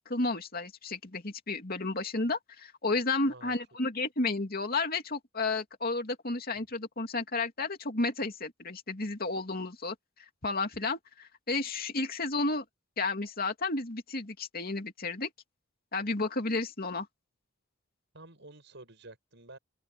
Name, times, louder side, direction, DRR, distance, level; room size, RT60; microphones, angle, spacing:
voice 1, 0.0-9.9 10.4-12.6 13.0-15.3 15.9-17.1, left 3 dB, 45° left, 2.7 m, -32 dB
voice 2, 3.2-3.6 18.1-19.6, right 2 dB, 60° right, 7.2 m, -50 dB
open air
head